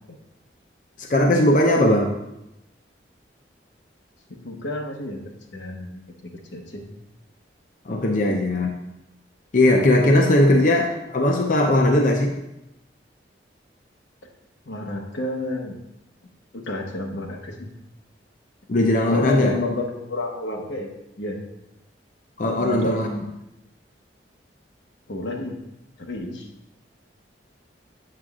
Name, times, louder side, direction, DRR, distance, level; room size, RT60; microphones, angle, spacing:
voice 1, 1.0-2.1 7.9-8.7 9.5-12.4 18.7-19.5 22.4-23.1, left 1 dB, 45° left, 2 dB, 0.6 m, -19 dB
voice 2, 4.3-5.2 5.5-6.9 8.3-8.4 14.6-15.8 16.5-17.7 19.1-21.5 22.5-23.3 25.1-25.6 26.0-26.5, left 2 dB, 90° left, 2 dB, 1.0 m, -30 dB
7.5 x 6.4 x 2.4 m, 0.89 s
head